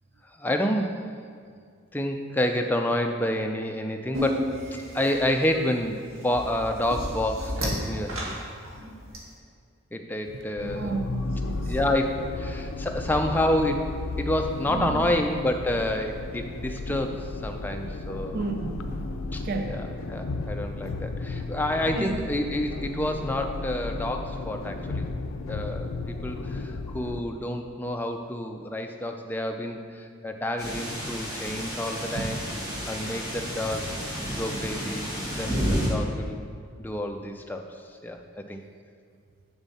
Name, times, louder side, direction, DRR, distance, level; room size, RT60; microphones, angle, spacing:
voice 1, 0.4-1.0 1.9-4.6 4.9-8.4 9.9-11.0 11.7-13.9 14.2-18.4 19.3-19.4 19.7-25.1 25.5-32.4 32.9-33.9 34.3-36.4 36.8-38.6, left 1 dB, 10° left, 4 dB, 0.4 m, -29 dB
sound 1, 4.1-9.2, equal, 85° right, 1.6 m, -33 dB
voice 2, 10.4-11.8 12.7-12.8 14.6-15.1 18.3-19.9 22.0-22.2 32.1-32.4, right 3 dB, 45° right, 4 dB, 0.5 m, -33 dB
sound 2, 10.6-27.2, left 3 dB, 75° left, 0.4 m, -34 dB
sound 3, 30.6-35.9, equal, 20° right, 1.6 m, -31 dB
7.2 x 6.8 x 4.2 m, 2.2 s
head